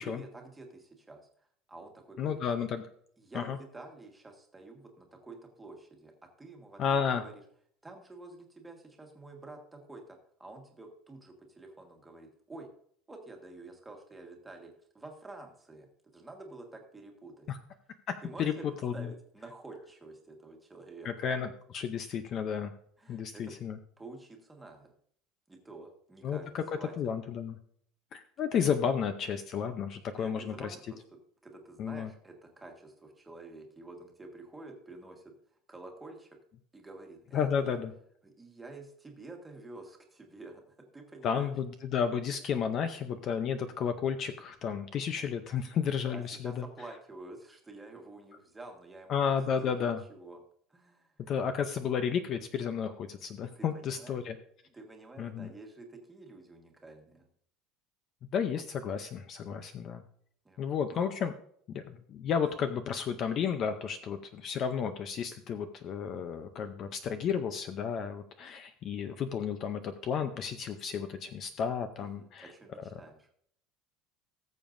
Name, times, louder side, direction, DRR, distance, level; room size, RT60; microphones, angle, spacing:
voice 1, 0.0-2.4 3.2-6.1 6.4-7.4 7.8-12.7 13.1-15.9 16.1-17.5 18.2-21.3 23.0-23.5 24.0-24.9 25.5-26.9 30.2-36.4 36.7-37.8 38.2-41.5 46.1-50.4 50.7-51.3 53.5-54.2 54.7-57.3 60.4-61.1 72.0-73.3, right 2 dB, 10° right, 2 dB, 1.5 m, -49 dB
voice 2, 2.2-2.8 3.3-3.6 6.8-7.2 17.5-17.6 18.1-18.5 18.8-19.1 21.0-22.7 23.1-23.8 26.2-26.6 27.0-27.6 28.1-30.7 31.8-32.1 37.3-37.9 41.2-46.6 49.1-50.0 51.3-54.4 55.2-55.5 58.3-60.0 60.6-61.3 61.7-61.8 62.1-72.4, left 7 dB, 35° left, 9 dB, 0.6 m, -32 dB
19.0 x 7.1 x 2.6 m, 0.64 s
cardioid pair, 170°, 0 cm